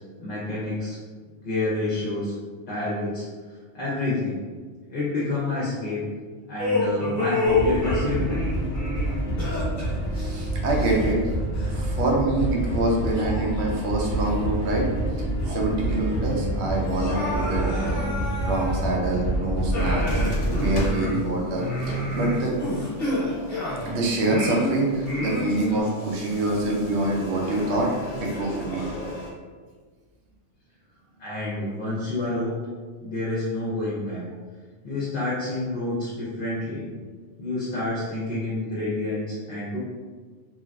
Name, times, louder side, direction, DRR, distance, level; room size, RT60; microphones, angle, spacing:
voice 1, 0.2-1.0 1.4-2.3 2.7-3.2 3.7-4.4 4.9-6.0 6.5-8.5 31.2-32.6 33.0-34.2 34.8-36.9 37.4-39.8, left 2 dB, 50° left, -8 dB, 0.8 m, -28 dB
sound 1, 6.6-11.3 11.6-11.8 12.4-12.5 13.1-14.4 14.8-14.9 15.3-16.2 16.8-19.2 19.7-23.9 24.3-25.8, left 2 dB, 35° left, 1.1 m, -29 dB
sound 2, 7.4-20.9, right 1 dB, ahead, 0.9 m, -27 dB
voice 2, 10.2-11.3 11.7-14.9 15.5-18.1 18.4-22.6 23.9-27.9 28.2-28.9, right 2 dB, 65° right, -2 dB, 0.9 m, -26 dB
sound 3, 19.5-29.3, equal, 85° left, 0.3 m, -37 dB
3.1 x 2.5 x 2.3 m, 1.5 s
omnidirectional pair, 1.3 m